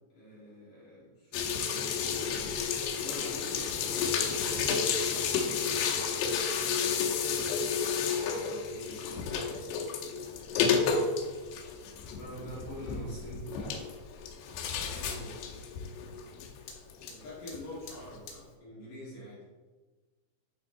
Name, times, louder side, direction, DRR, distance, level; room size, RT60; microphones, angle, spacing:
voice 1, 0.1-1.5 2.9-4.0 7.6-9.0 11.9-13.9 14.8-15.4 17.1-19.4, equal, 55° left, -7 dB, 2.8 m, -45 dB
sound 1, 1.3-17.1 17.5-17.7 18.0-18.1, left 6 dB, 85° left, 2.4 m, -31 dB
Fire, 1.7-18.5, left 3 dB, 70° left, 2.7 m, -49 dB
11.5 x 4.2 x 3.7 m, 1.3 s
omnidirectional pair, 5.8 m